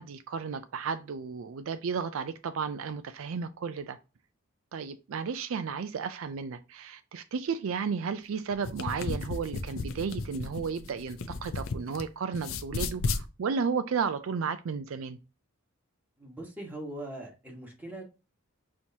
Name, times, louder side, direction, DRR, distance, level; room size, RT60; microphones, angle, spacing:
voice 1, 0.0-4.0 4.7-15.2, right 5 dB, 65° right, 0.4 m, -33 dB
sound 1, 8.5-12.0 12.3-13.2, left 3 dB, 65° left, 0.5 m, -34 dB
voice 2, 16.2-18.0, right 1 dB, 10° right, 1.4 m, -41 dB
6.3 x 2.9 x 2.7 m
head